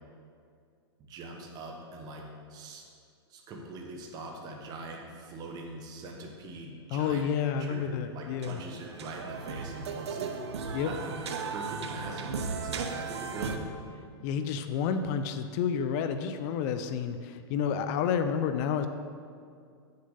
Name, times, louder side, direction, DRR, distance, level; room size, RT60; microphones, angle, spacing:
voice 1, 1.1-2.8 3.3-7.3 7.6-7.8 8.1-10.3 10.8-13.8, right 2 dB, 30° right, 0 dB, 1.2 m, -42 dB
voice 2, 6.9-8.6 10.7-10.9 14.2-18.9, left 7 dB, 40° left, 9 dB, 0.5 m, -30 dB
sound 1, 7.8-7.9 8.1-13.6, right 5 dB, 80° right, 0.8 m, -36 dB
7.8 x 6.6 x 5.5 m, 2.3 s
hypercardioid pair, 140°, 14 cm